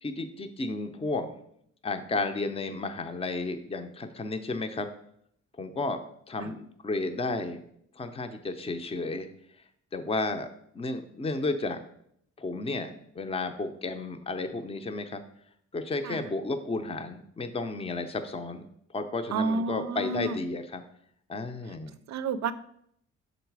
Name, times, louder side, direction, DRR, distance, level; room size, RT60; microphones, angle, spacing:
voice 1, 0.0-1.3 1.8-4.9 5.6-6.0 6.3-7.6 8.0-9.3 9.9-10.5 10.7-11.8 12.4-12.9 13.2-15.2 15.7-18.6 18.9-20.8 21.3-21.9, left 3 dB, 20° left, 7 dB, 0.6 m, -32 dB
voice 2, 19.3-20.4 22.1-22.5, right 4 dB, 65° right, 14 dB, 0.5 m, -30 dB
6.3 x 4.0 x 4.7 m, 0.70 s
cardioid pair, 105°, 29 cm